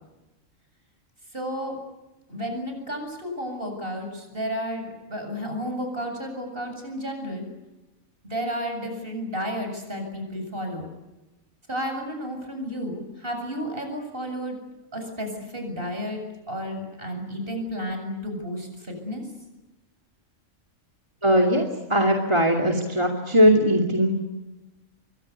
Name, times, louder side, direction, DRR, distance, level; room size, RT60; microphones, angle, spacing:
voice 1, 1.3-1.8 2.3-7.5 8.2-10.9 11.7-14.6 14.9-16.2 16.5-19.2, equal, 40° right, 5 dB, 8.0 m, -32 dB
voice 2, 21.2-21.6 21.9-24.2, equal, 20° right, 3 dB, 2.5 m, -19 dB
27.5 x 24.0 x 8.4 m, 1.0 s
omnidirectional pair, 1.4 m